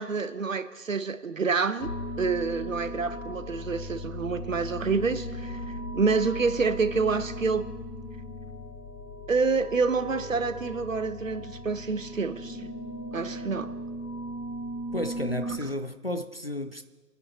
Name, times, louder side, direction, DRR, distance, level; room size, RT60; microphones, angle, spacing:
voice 1, 0.0-1.9 2.2-5.6 5.9-7.7 9.3-12.7 13.1-13.7, right 4 dB, 55° right, 1.0 m, -27 dB
sound 1, 1.8-15.6, equal, 85° left, 2.1 m, -37 dB
voice 2, 14.9-16.8, left 1 dB, 40° left, 0.5 m, -32 dB
26.5 x 9.7 x 4.3 m
figure-of-eight pair, 150°, 48 cm